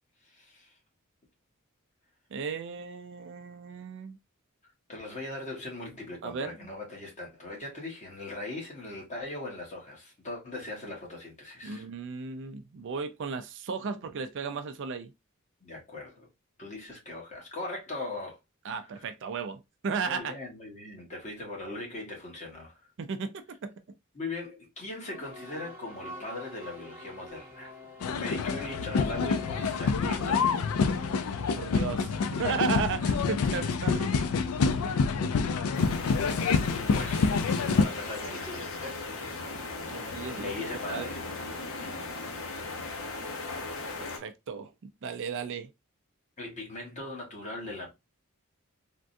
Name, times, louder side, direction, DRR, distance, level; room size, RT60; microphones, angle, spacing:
voice 1, 0.2-0.7 4.9-11.9 15.6-16.3 16.6-18.4 18.7-19.1 20.0-22.9 24.1-27.8 28.1-30.6 31.4-31.6 36.9-37.4 37.8-39.0 40.4-41.3 41.8-42.1 46.4-47.9, left 2 dB, 35° left, 1.2 m, -40 dB
voice 2, 2.3-4.2 6.2-6.5 11.6-15.1 18.6-20.4 23.0-23.7 31.6-34.3 39.9-40.5 40.9-41.1 44.0-45.7, right 5 dB, 60° right, 0.4 m, -35 dB
sound 1, 25.1-31.8, left 3 dB, 10° right, 0.9 m, -45 dB
sound 2, 28.0-37.8, left 5 dB, 85° left, 0.4 m, -27 dB
sound 3, 35.7-44.2, left 3 dB, 65° left, 0.7 m, -37 dB
3.5 x 2.2 x 2.6 m
head